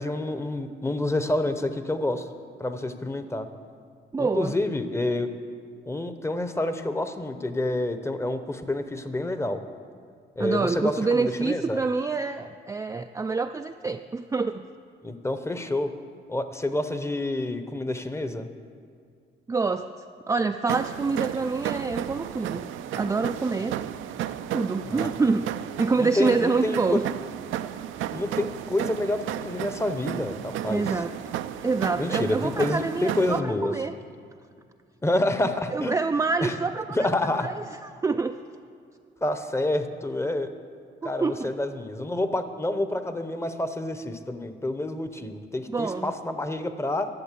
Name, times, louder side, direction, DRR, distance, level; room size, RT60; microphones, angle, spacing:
voice 1, 0.0-2.3 2.6-3.5 4.2-5.3 5.9-9.6 10.4-11.8 15.0-15.9 16.3-18.5 24.9-25.1 26.0-27.0 28.1-30.8 32.0-33.7 35.0-36.0 36.4-36.5 37.0-37.5 39.2-40.5 41.0-47.1, left 1 dB, 15° left, 9 dB, 0.8 m, -28 dB
voice 2, 4.1-4.5 10.4-14.6 19.5-22.7 22.9-23.8 24.5-25.5 25.8-27.0 30.7-31.1 31.6-33.9 35.7-38.4 41.0-41.5 45.7-46.1, right 4 dB, 15° right, 6 dB, 0.3 m, -27 dB
sound 1, 20.7-33.4, right 11 dB, 80° right, 0.5 m, -33 dB
12.0 x 7.1 x 7.4 m, 2.2 s
cardioid pair, 90°, 20 cm